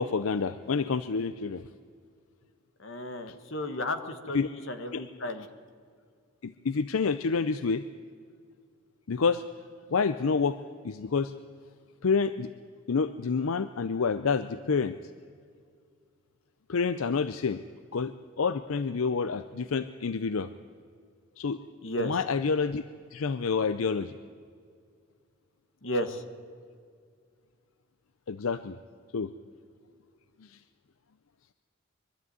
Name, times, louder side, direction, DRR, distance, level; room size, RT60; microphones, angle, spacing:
voice 1, 0.0-1.6 4.3-4.5 4.9-5.0 6.4-7.8 9.1-9.4 9.9-10.6 10.8-11.3 12.0-12.5 12.9-14.9 16.7-17.6 17.9-20.5 21.4-21.6 22.0-22.8 23.1-24.1 28.3-28.8 29.1-29.3, left 5 dB, 90° left, 13 dB, 0.6 m, -28 dB
voice 2, 2.8-5.5 21.8-22.2 25.8-26.2, left 1 dB, 65° left, 9 dB, 1.5 m, -33 dB
23.5 x 12.5 x 9.4 m, 2.1 s
head